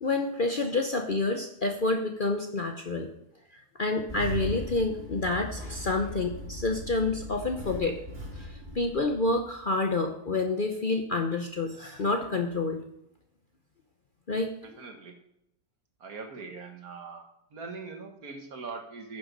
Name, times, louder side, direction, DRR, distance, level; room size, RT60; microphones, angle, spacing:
voice 1, 0.0-3.1 3.5-8.0 8.3-12.8 14.3-14.5, left 3 dB, 45° left, 4 dB, 0.8 m, -28 dB
Engine starting, 4.1-9.6, right 1 dB, 30° right, 2.4 m, -39 dB
voice 2, 14.6-15.1 16.0-17.2 17.5-19.2, right 4 dB, 65° right, 4 dB, 2.0 m, -41 dB
10.5 x 7.1 x 5.2 m, 0.79 s
omnidirectional pair, 1.7 m